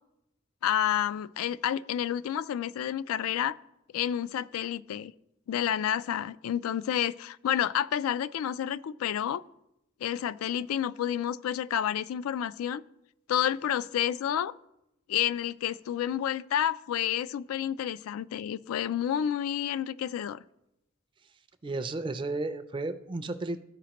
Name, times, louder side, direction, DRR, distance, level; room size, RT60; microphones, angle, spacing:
voice 1, 0.6-3.6 3.9-5.1 5.5-9.4 10.0-12.8 13.3-14.5 15.1-20.4, left 10 dB, 90° left, 17 dB, 0.3 m, -30 dB
voice 2, 21.6-23.6, right 2 dB, 25° right, 10 dB, 0.4 m, -33 dB
13.5 x 4.9 x 2.9 m, 0.86 s
head